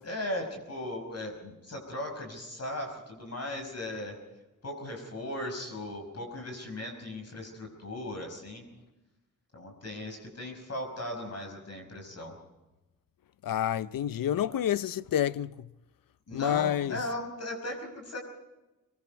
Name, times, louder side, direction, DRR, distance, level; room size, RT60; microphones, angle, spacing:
voice 1, 0.0-4.2 4.6-8.6 9.5-12.4 14.5-14.6 16.3-18.2, left 1 dB, 50° left, 5.4 m, -37 dB
voice 2, 13.4-15.5 16.3-17.0, left 10 dB, 85° left, 0.6 m, -28 dB
26.0 x 22.0 x 4.6 m
wide cardioid pair, 110°, 33 cm